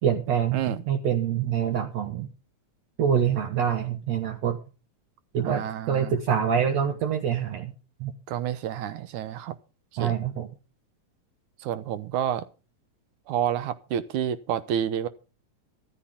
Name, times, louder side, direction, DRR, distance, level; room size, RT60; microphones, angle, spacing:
voice 1, 0.0-2.3 3.0-4.6 5.3-7.7 8.0-8.1 10.0-10.5, right 8 dB, 65° right, 2.3 m, -25 dB
voice 2, 0.5-0.8 5.4-6.2 8.3-9.6 9.9-10.1 11.6-12.5 13.3-15.1, right 10 dB, 85° right, 2.4 m, -29 dB
14.5 x 13.0 x 3.6 m
omnidirectional pair, 3.4 m